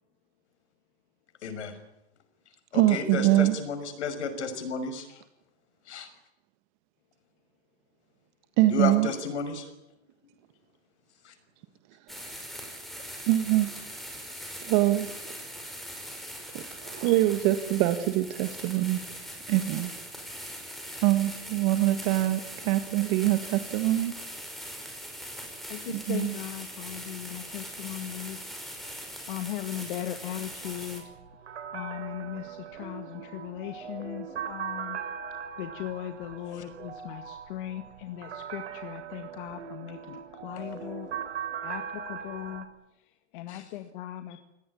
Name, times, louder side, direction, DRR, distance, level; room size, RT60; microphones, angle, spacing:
voice 1, 1.4-1.7 2.7-5.1 5.9-6.1 8.7-9.7 11.2-11.3 43.5-43.6, left 5 dB, 80° left, 10 dB, 6.2 m, -32 dB
voice 2, 2.7-3.6 8.6-9.1 13.3-13.7 14.6-15.4 16.5-19.0 19.5-19.9 21.0-24.1 25.9-26.3, right 15 dB, 40° right, 9 dB, 1.7 m, -24 dB
sound 1, 12.1-31.0, equal, ahead, 5.4 m, -41 dB
voice 3, 25.5-29.0 29.3-31.1 31.7-35.0 35.6-41.1 41.6-44.4, left 12 dB, 50° left, 7 dB, 2.0 m, -38 dB
sound 2, 30.6-42.7, right 8 dB, 85° right, 4.0 m, -40 dB
24.0 x 18.0 x 10.0 m, 0.91 s
supercardioid pair, 150°, 34 cm